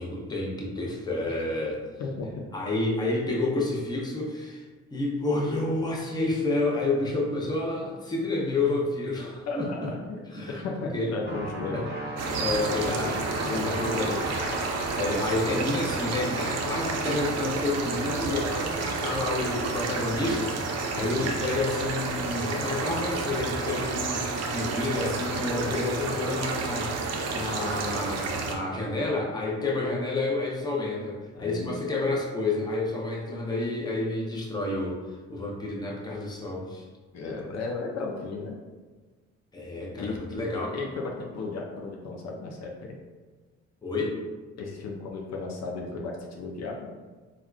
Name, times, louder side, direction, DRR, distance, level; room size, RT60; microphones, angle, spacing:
voice 1, 0.0-1.8 2.5-4.7 4.9-9.9 10.3-10.6 10.9-11.2 11.7-11.9 12.4-13.2 13.6-14.2 14.9-35.0 35.3-36.8 39.5-40.8 43.8-44.2, left 2 dB, 15° left, -2 dB, 0.6 m, -29 dB
voice 2, 9.5-9.8 10.1-11.8 12.6-14.2 20.9-21.2 31.3-31.7 35.9-36.0 37.1-38.6 40.0-43.0 44.6-46.9, left 3 dB, 60° left, 0 dB, 0.5 m, -35 dB
sound 1, 11.3-18.7, right 1 dB, 35° right, 1.0 m, -36 dB
sound 2, 12.2-28.6, right 4 dB, 55° right, 0.5 m, -31 dB
3.5 x 2.3 x 2.3 m, 1.3 s
cardioid pair, 90°, 30 cm